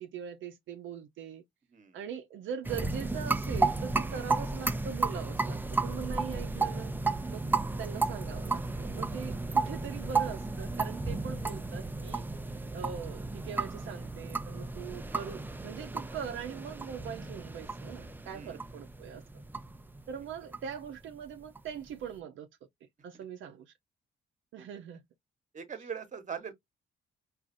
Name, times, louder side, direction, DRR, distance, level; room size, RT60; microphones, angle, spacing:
voice 1, 0.0-1.4 1.9-6.9 7.3-7.4 7.8-12.2 12.7-19.2 20.1-22.5 23.0-23.7 24.5-25.0, right 8 dB, 75° right, 0.6 m, -41 dB
sound 1, 2.6-21.9, right 3 dB, 10° right, 0.4 m, -33 dB
voice 2, 25.5-26.5, right 7 dB, 40° right, 1.0 m, -42 dB
4.8 x 2.4 x 2.5 m
cardioid pair, 90°, 20 cm